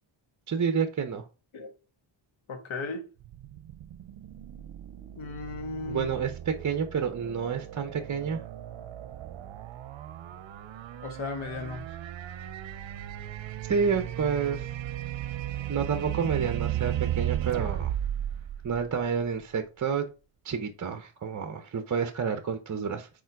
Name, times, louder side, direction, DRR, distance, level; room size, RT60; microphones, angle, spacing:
voice 1, 0.5-1.3 5.9-8.5 13.6-14.7 15.7-17.9 18.6-20.1 20.4-23.1, right 6 dB, 40° right, 0.8 m, -29 dB
voice 2, 2.5-3.1 5.2-6.1 11.0-11.9, left 3 dB, 85° left, 1.4 m, -36 dB
sound 1, 3.2-19.4, right 12 dB, 75° right, 0.7 m, -35 dB
7.2 x 4.5 x 4.6 m
wide cardioid pair, 135°, 46 cm